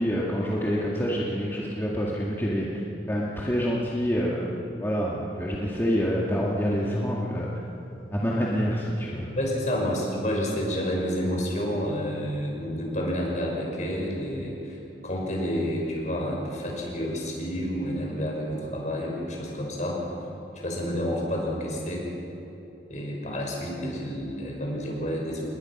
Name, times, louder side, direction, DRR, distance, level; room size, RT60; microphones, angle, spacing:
voice 1, 0.0-2.8 3.1-4.5 4.8-7.5 8.1-9.3, equal, 15° left, -5 dB, 2.1 m, -27 dB
voice 2, 9.4-20.0 20.6-22.1 22.9-25.5, equal, 45° left, -2 dB, 6.0 m, -29 dB
28.5 x 21.0 x 6.1 m, 2.9 s
head